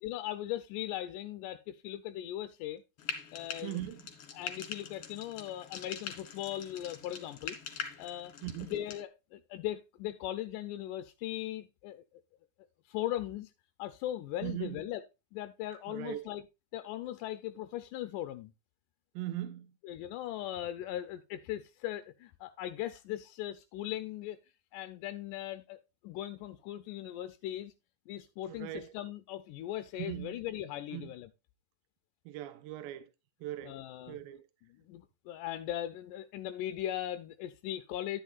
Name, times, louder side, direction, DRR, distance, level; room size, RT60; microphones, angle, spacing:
voice 1, 0.0-2.8 3.3-3.8 4.3-7.6 8.0-8.3 8.6-12.2 12.9-13.5 13.8-15.0 15.3-16.4 16.7-18.5 19.8-24.4 24.7-25.8 26.0-27.7 28.1-31.3 33.6-34.2 34.7-38.2, left 13 dB, 80° left, 1.9 m, -39 dB
Frying (food), 3.0-9.0, left 7 dB, 50° left, 2.2 m, -43 dB
voice 2, 3.6-4.0 8.4-8.7 14.4-14.8 15.9-16.3 19.2-19.7 28.5-28.9 30.0-30.4 30.9-31.1 32.3-33.1 33.4-33.8 34.1-34.4, right 13 dB, 80° right, 2.3 m, -39 dB
10.5 x 10.0 x 2.4 m
omnidirectional pair, 4.2 m